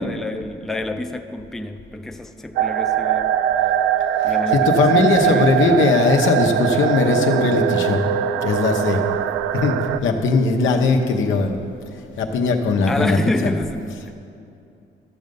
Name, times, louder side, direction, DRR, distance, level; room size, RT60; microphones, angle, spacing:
voice 1, 0.0-3.4 4.2-5.9 12.9-14.1, left 1 dB, ahead, 5 dB, 0.5 m, -28 dB
sound 1, 2.6-10.0, right 10 dB, 85° right, 0.4 m, -21 dB
voice 2, 4.2-8.0 8.4-9.0 9.5-9.7 10.0-11.6 12.2-13.5, left 4 dB, 75° left, 3 dB, 1.1 m, -19 dB
13.5 x 6.6 x 5.4 m, 2.5 s
cardioid pair, 90°, 20 cm